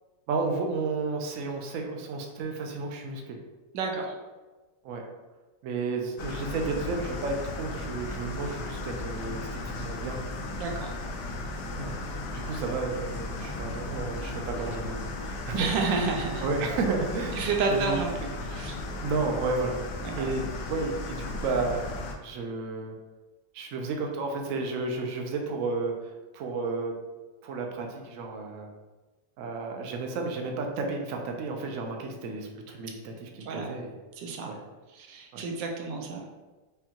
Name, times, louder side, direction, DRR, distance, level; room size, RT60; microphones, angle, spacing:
voice 1, 0.3-3.4 4.8-5.0 5.6-10.2 11.8-12.0 12.3-16.0 16.4-18.0 19.0-19.8 20.2-21.8 22.2-22.9 23.5-26.9 27.4-28.7 29.4-33.9 34.5-34.6 35.3-35.5, right 3 dB, 70° right, 2 dB, 0.7 m, -32 dB
voice 2, 3.7-4.1 10.6-10.9 15.5-16.5 17.4-18.1 18.5-18.8 20.0-20.3 33.4-33.7 34.2-34.5 34.9-36.2, right 4 dB, 85° right, 1 dB, 1.3 m, -30 dB
sound 1, 6.2-22.2, left 2 dB, 75° left, 1.1 m, -36 dB
5.3 x 2.3 x 2.8 m, 1.2 s
omnidirectional pair, 2.0 m